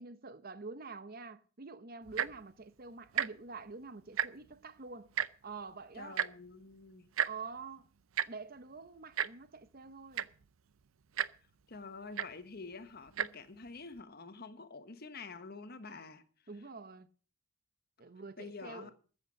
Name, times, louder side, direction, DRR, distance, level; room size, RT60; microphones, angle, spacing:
voice 1, 0.0-5.1 5.4-6.2 7.2-7.9 8.3-10.3 16.5-17.1 18.0-18.9, right 4 dB, 45° right, 0.9 m, -47 dB
Tick-tock, 2.1-2.4 3.1-3.3 3.6-3.7 4.0-4.5 5.2-5.3 6.2-6.3 7.2-7.3 8.2-8.3 9.2-9.3 9.9-10.0 10.1-10.5 11.2-11.3 12.2-12.3 13.1-13.3 14.0-14.1, right 9 dB, 85° right, 0.6 m, -32 dB
voice 2, 6.0-7.1 11.7-16.2 18.4-18.9, left 4 dB, 50° left, 1.2 m, -47 dB
14.0 x 8.2 x 6.3 m
head